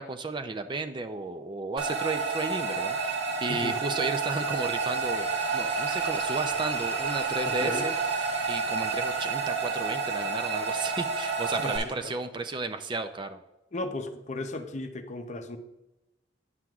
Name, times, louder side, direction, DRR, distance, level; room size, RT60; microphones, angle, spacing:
voice 1, 0.0-7.9 8.5-13.4, right 3 dB, 25° right, 7 dB, 0.4 m, -33 dB
sound 1, 1.8-11.8, right 4 dB, 85° right, 1.4 m, -29 dB
voice 2, 7.5-7.9 11.6-12.1 13.7-15.6, left 2 dB, 40° left, 7 dB, 0.6 m, -35 dB
9.7 x 7.6 x 2.3 m, 0.96 s
head